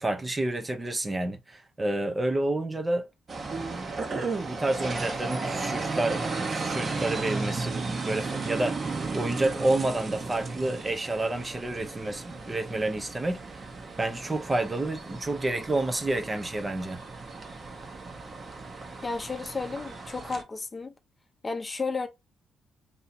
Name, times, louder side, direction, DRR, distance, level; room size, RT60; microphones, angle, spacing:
voice 1, 0.0-3.1 4.1-13.4 14.0-17.0, right 2 dB, 20° right, 0.7 m, -29 dB
sound 1, 3.3-20.4, right 3 dB, 40° right, 1.0 m, -35 dB
voice 2, 19.0-20.9 21.4-22.1, left 4 dB, 25° left, 0.7 m, -33 dB
2.8 x 2.7 x 4.2 m
cardioid pair, 90°, 0 cm